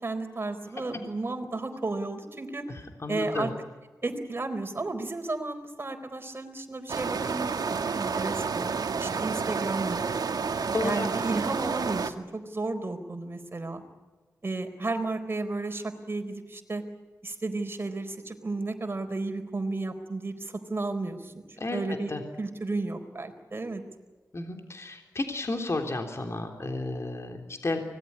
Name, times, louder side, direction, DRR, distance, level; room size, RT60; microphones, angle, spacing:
voice 1, 0.0-2.7 3.1-3.5 4.0-8.7 9.0-10.1 10.8-13.8 14.4-16.8 17.2-22.1 22.4-23.8, right 2 dB, 35° right, 5 dB, 4.3 m, -33 dB
voice 2, 3.0-3.5 10.7-11.1 21.6-21.8 22.1-22.2 24.3-27.8, left 2 dB, 45° left, 4 dB, 3.5 m, -32 dB
sound 1, 6.9-12.1, right 5 dB, 75° right, 1.8 m, -30 dB
25.0 x 19.5 x 9.8 m, 1.2 s
wide cardioid pair, 80°, 7 cm